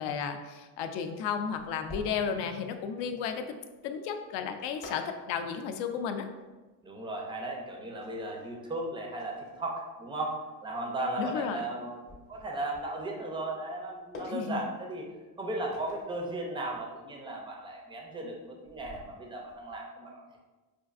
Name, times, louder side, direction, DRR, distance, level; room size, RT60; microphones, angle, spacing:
voice 1, 0.0-3.5 3.8-6.3 11.2-11.6 14.3-14.6, left 7 dB, 80° left, 7 dB, 0.5 m, -33 dB
sound 1, 1.5-19.8, left 2 dB, 30° left, 0.7 m, -51 dB
voice 2, 6.8-10.4 10.6-15.0 15.4-20.2, right 1 dB, 15° right, 0 dB, 0.3 m, -36 dB
5.0 x 2.5 x 2.4 m, 1.2 s
cardioid pair, 140°, 43 cm